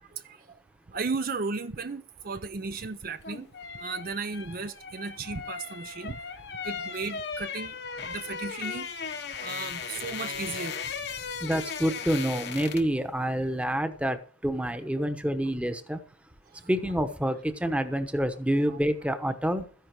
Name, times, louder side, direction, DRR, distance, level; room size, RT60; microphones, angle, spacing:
voice 1, 0.1-0.6 0.9-3.5 3.7-6.2 6.6-7.8 8.0-8.9 9.4-10.9 18.7-18.8, right 4 dB, 50° right, 0.6 m, -35 dB
sound 1, 3.0-13.0 13.3-13.5, left 6 dB, 60° left, 1.1 m, -37 dB
voice 2, 11.4-16.0 16.7-19.7, equal, 5° right, 1.0 m, -28 dB
13.5 x 10.5 x 4.6 m
head